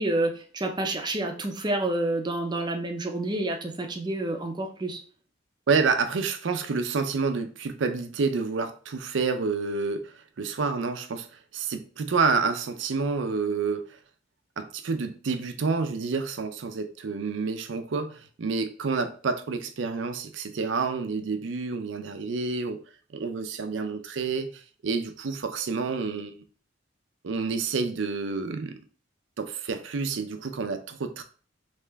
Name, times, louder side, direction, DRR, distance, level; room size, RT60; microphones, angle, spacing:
voice 1, 0.0-5.0, right 2 dB, 25° right, 3 dB, 0.5 m, -29 dB
voice 2, 5.7-14.0 14.6-22.8 23.1-26.4 27.2-28.8 29.4-31.2, right 4 dB, 70° right, 9 dB, 0.5 m, -29 dB
3.3 x 2.9 x 3.4 m, 0.41 s
head